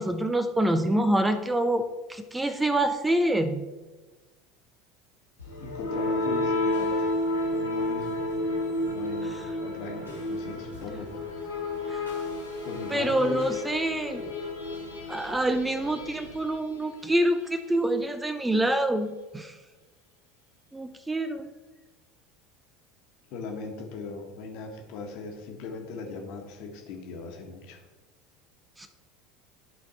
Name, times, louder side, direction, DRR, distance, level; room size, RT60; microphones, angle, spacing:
voice 1, 0.0-1.8 2.1-3.7 11.9-12.0 12.9-14.3 15.1-19.5 20.7-21.5 28.8-28.9, right 1 dB, 10° right, 9 dB, 0.6 m, -26 dB
sound 1, 5.4-17.3, left 1 dB, 85° left, 2.0 m, -31 dB
voice 2, 5.6-7.1 7.5-8.2 8.8-11.5 12.6-13.4 23.3-27.8, left 4 dB, 55° left, 2 dB, 1.4 m, -38 dB
11.5 x 4.2 x 4.3 m, 1.2 s
figure-of-eight pair, 70°, 0 cm